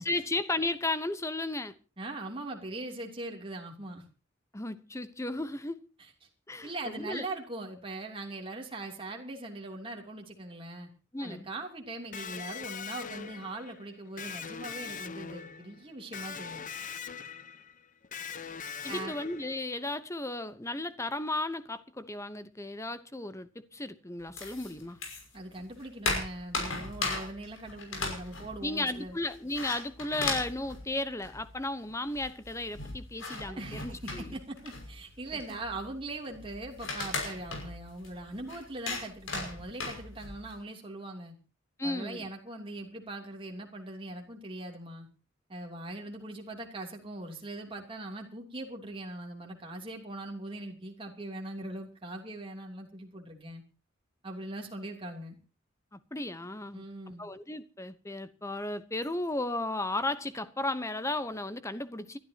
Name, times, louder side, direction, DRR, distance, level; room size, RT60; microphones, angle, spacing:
voice 1, 0.0-1.7 4.5-5.8 6.5-7.3 11.1-11.5 18.8-25.0 28.6-34.3 41.8-42.3 55.9-56.8 57.2-62.2, left 2 dB, 15° left, 0.9 m, -34 dB
voice 2, 2.0-4.0 6.6-10.9 11.2-16.7 18.9-19.2 25.3-29.2 33.4-41.3 41.8-45.1 45.5-53.6 54.2-55.4 56.7-57.2, right 2 dB, 25° right, 2.9 m, -41 dB
Electric guitar, 12.1-19.8, left 6 dB, 40° left, 0.9 m, -42 dB
sound 1, 24.4-25.4 25.7-31.6 31.9-32.0 32.1-40.5, left 3 dB, 80° left, 5.8 m, -37 dB
30.0 x 12.0 x 2.9 m
head